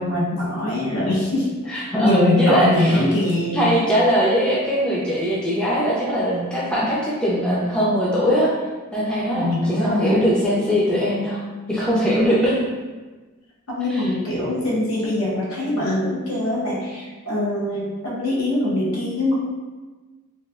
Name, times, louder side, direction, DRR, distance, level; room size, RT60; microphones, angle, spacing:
voice 1, 0.0-1.5 2.0-3.7 9.3-10.3 13.7-19.4, left 1 dB, 75° left, -7 dB, 0.9 m, -22 dB
voice 2, 1.7-3.0 3.5-8.5 8.9-11.4 11.7-12.6 13.9-14.0, equal, 5° left, -8 dB, 0.3 m, -21 dB
3.0 x 2.2 x 2.3 m, 1.3 s
head